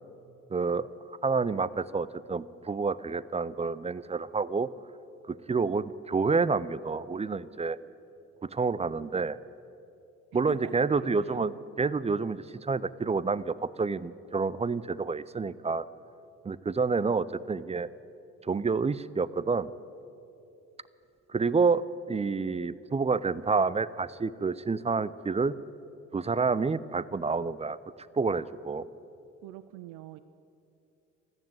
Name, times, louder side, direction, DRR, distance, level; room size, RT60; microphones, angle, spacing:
voice 1, 0.5-0.9 1.2-4.7 5.3-7.8 8.4-9.4 10.3-15.8 16.4-17.9 18.4-19.7 21.3-25.5 26.1-27.8 28.1-28.8, right 4 dB, 20° right, 19 dB, 0.5 m, -28 dB
voice 2, 10.5-11.4 29.4-30.2, right 15 dB, 70° right, 14 dB, 0.6 m, -45 dB
14.5 x 10.5 x 9.2 m, 2.7 s
hypercardioid pair, 45°, 36 cm